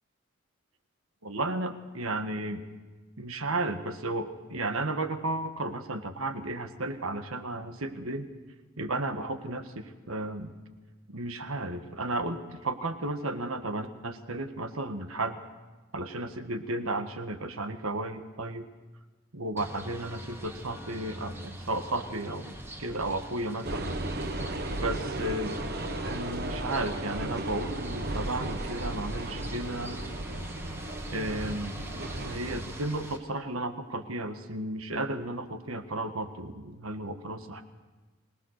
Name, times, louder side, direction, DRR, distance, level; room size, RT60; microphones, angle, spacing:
voice 1, 1.2-2.6 3.2-8.3 8.8-10.5 11.1-15.4 15.9-18.6 19.3-24.0 24.7-25.6 26.1-30.0 31.1-31.8 32.2-37.6, right 2 dB, 85° right, 7 dB, 1.6 m, -33 dB
sound 1, 19.6-33.2, right 1 dB, 10° right, 1.6 m, -44 dB
sound 2, 23.6-32.8, right 1 dB, 45° right, 1.3 m, -35 dB
24.5 x 18.5 x 6.6 m, 1.2 s
head